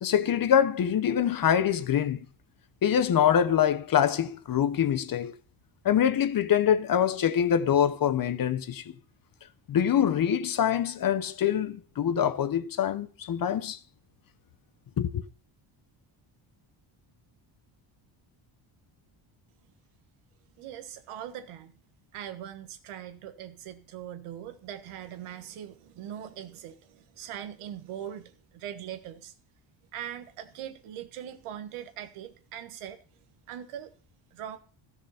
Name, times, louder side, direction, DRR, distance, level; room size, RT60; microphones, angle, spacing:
voice 1, 0.0-2.2 2.8-5.3 5.8-8.9 9.7-13.8 15.0-15.2, left 9 dB, 45° left, 0.9 m, -24 dB
voice 2, 20.6-21.7 22.1-29.3 29.9-33.0 33.5-33.9 34.3-34.6, right 10 dB, 80° right, 1.5 m, -41 dB
13.5 x 6.8 x 5.6 m
cardioid pair, 115°, 50 cm